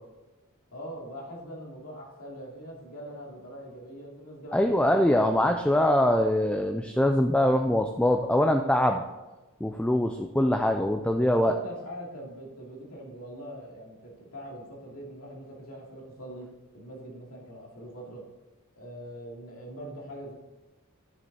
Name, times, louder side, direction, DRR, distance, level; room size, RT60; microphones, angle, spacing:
voice 1, 0.7-5.3 11.4-16.5 16.7-18.2 18.7-20.3, equal, 70° left, -2 dB, 2.7 m, -42 dB
voice 2, 4.5-9.0 9.6-11.5, left 1 dB, 5° left, 4 dB, 0.4 m, -23 dB
10.5 x 6.5 x 4.2 m, 1.1 s
head